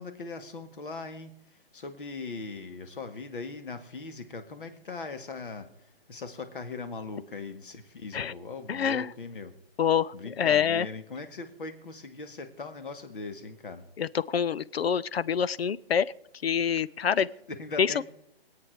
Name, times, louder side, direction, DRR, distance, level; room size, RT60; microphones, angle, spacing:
voice 1, 0.0-9.5 10.1-13.8 17.2-18.0, left 3 dB, 55° left, 9 dB, 2.1 m, -40 dB
voice 2, 8.7-9.1 9.8-10.9 14.0-16.1 16.4-17.3 17.8-18.0, left 7 dB, 80° left, 19 dB, 0.7 m, -26 dB
24.0 x 8.7 x 4.8 m, 0.77 s
hypercardioid pair, 175°, 30 cm